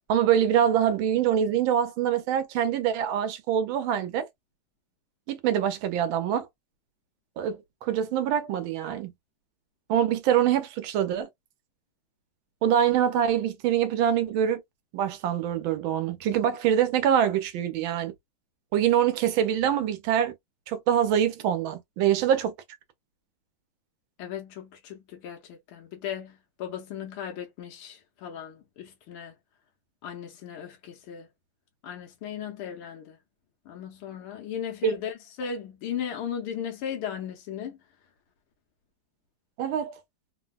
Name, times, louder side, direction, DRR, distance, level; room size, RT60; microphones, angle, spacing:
voice 1, 0.1-4.3 5.3-6.5 7.4-9.1 9.9-11.3 12.6-14.6 14.9-18.1 18.7-20.3 20.7-22.5 34.8-35.0 39.6-39.9, right 9 dB, 75° right, 1.4 m, -24 dB
voice 2, 24.2-29.3 30.0-31.3 31.8-33.2 33.6-37.8, left 8 dB, 80° left, 1.6 m, -36 dB
3.9 x 2.1 x 2.3 m
omnidirectional pair, 2.4 m